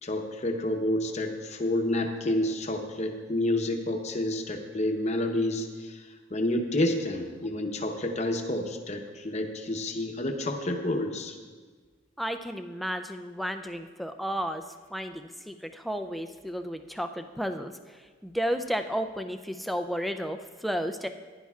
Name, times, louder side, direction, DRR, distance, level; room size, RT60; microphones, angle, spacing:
voice 1, 0.0-11.3, left 1 dB, 35° left, 4 dB, 0.8 m, -29 dB
voice 2, 12.2-14.6 14.9-21.1, equal, ahead, 7 dB, 0.3 m, -33 dB
15.0 x 10.5 x 2.4 m, 1.5 s
head